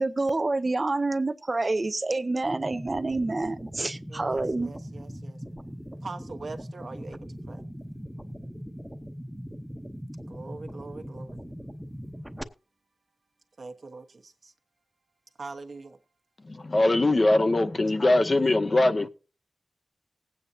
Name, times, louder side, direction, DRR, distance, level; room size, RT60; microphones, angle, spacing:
voice 1, 0.0-4.7, right 2 dB, 35° right, 0.6 m, -27 dB
sound 1, 2.4-12.4, equal, 5° right, 0.8 m, -40 dB
voice 2, 4.1-5.4 6.0-7.2 7.5-7.6 10.3-11.4 13.6-14.5 15.4-16.0, right 3 dB, 65° right, 1.1 m, -42 dB
voice 3, 16.5-19.1, left 2 dB, 40° left, 0.7 m, -22 dB
20.0 x 8.6 x 2.7 m
wide cardioid pair, 80°, 0 cm